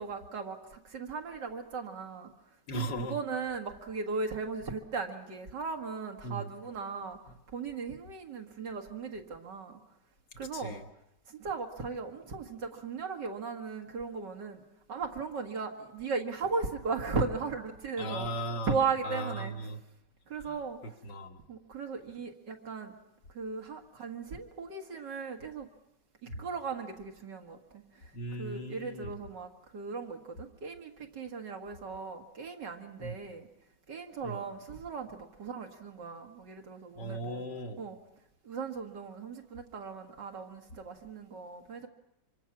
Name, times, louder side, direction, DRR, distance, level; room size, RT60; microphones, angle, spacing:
voice 1, 0.0-2.3 2.7-7.2 7.5-9.8 10.4-10.8 11.3-14.6 14.9-18.3 18.7-19.5 20.3-20.8 21.5-22.9 23.3-25.7 26.2-27.8 28.4-33.5 33.9-37.4 37.8-38.0 38.4-41.9, right 4 dB, 85° right, 3 dB, 2.5 m, -37 dB
voice 2, 2.7-3.2 6.2-6.5 7.3-7.4 10.5-10.9 18.0-18.8 19.0-19.8 20.4-20.6 20.8-21.4 26.3-26.5 28.1-29.2 33.0-33.2 34.2-34.4 37.0-37.8, right 1 dB, 90° left, 3 dB, 2.3 m, -38 dB
25.5 x 24.5 x 6.1 m, 0.86 s
omnidirectional pair, 1.8 m